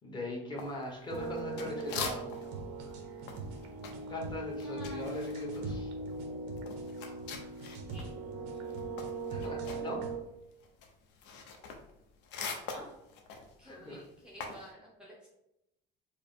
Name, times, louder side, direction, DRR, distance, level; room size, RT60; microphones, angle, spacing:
voice 1, 0.0-2.3 4.1-5.9 9.3-10.0 13.6-14.0, left 2 dB, 25° left, -2 dB, 1.0 m, -40 dB
sound 1, 0.6-2.6 2.9-8.1 8.4-14.7, left 5 dB, 70° left, 0.7 m, -43 dB
sound 2, 1.1-10.2, right 3 dB, 85° right, 0.8 m, -39 dB
voice 2, 4.6-5.2 7.9-8.1 12.7-12.9 13.6-15.3, equal, 5° right, -5 dB, 0.6 m, -50 dB
4.7 x 2.0 x 3.5 m, 0.85 s
cardioid pair, 145°, 19 cm